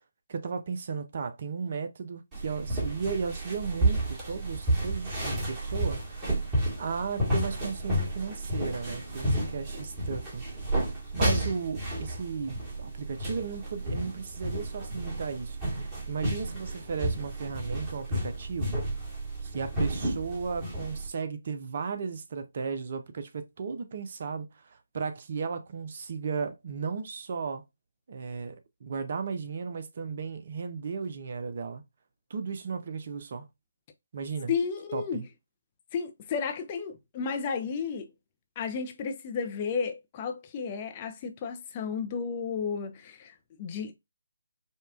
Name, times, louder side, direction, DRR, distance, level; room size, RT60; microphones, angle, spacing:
voice 1, 0.3-6.3 6.8-10.4 11.1-18.8 19.4-27.6 28.1-31.8 32.3-33.5 34.1-34.5 34.9-35.2, right 5 dB, 45° right, 0.6 m, -35 dB
sound 1, 2.3-21.1, right 1 dB, 15° right, 1.5 m, -31 dB
voice 2, 34.5-35.2 35.9-38.1 38.6-43.9, left 6 dB, 25° left, 0.5 m, -33 dB
5.2 x 2.3 x 2.4 m
figure-of-eight pair, 150°, 0 cm